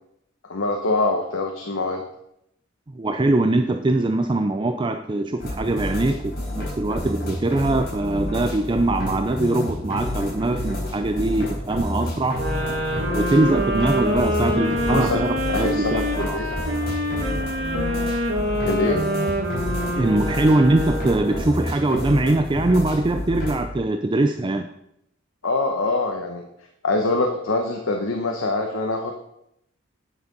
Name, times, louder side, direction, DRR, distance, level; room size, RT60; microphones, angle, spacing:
voice 1, 0.4-2.0 14.9-15.2 15.5-16.6 18.6-19.0 25.4-26.5 26.8-29.1, left 2 dB, 90° left, 3 dB, 1.1 m, -24 dB
voice 2, 2.9-12.4 13.1-16.4 19.9-24.7, right 2 dB, 25° right, 7 dB, 0.4 m, -22 dB
sound 1, 5.4-23.6, left 1 dB, 50° left, 4.3 m, -29 dB
sound 2, 12.3-21.6, equal, 70° right, 2.3 m, -26 dB
9.6 x 6.8 x 5.3 m, 0.78 s
head